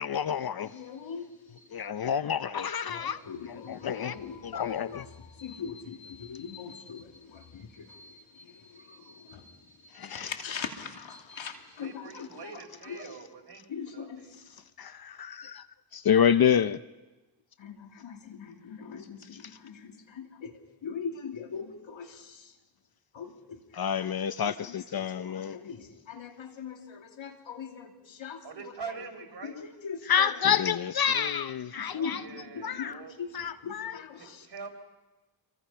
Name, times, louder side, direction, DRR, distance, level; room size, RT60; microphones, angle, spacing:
voice 1, 0.0-0.7 1.7-4.2 4.4-5.1 9.9-10.3 14.8-15.6 15.9-16.8 19.4-19.5 23.7-25.6 30.1-32.2 32.6-33.0 33.3-34.0, left 8 dB, 50° left, 0.7 m, -28 dB
voice 2, 0.6-1.7 2.9-13.1 13.7-14.3 17.6-22.5 23.1-23.6 24.0-24.1 24.6-24.8 25.2-28.4 29.4-30.4 31.8-34.5, left 6 dB, 70° left, 2.9 m, -41 dB
voice 3, 11.8-14.3 28.4-29.6 31.9-33.1 34.2-34.7, right 5 dB, 55° right, 4.4 m, -44 dB
26.5 x 24.0 x 5.7 m
cardioid pair, 65°, 48 cm